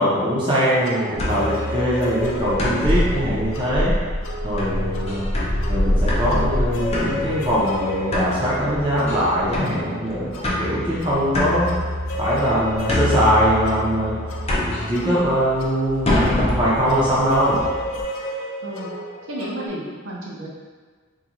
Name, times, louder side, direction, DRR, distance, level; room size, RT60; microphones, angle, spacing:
voice 1, 0.0-4.0 4.4-5.3 5.7-11.7 12.2-14.2 14.7-17.7, equal, 25° right, -8 dB, 0.5 m, -22 dB
sound 1, 0.8-19.7, left 1 dB, 85° left, 0.5 m, -34 dB
water jugs, 1.1-18.0, left 1 dB, 30° left, 0.4 m, -25 dB
voice 2, 18.6-19.0 19.3-20.5, right 1 dB, 70° right, -4 dB, 0.6 m, -32 dB
3.7 x 2.2 x 2.9 m, 1.5 s
head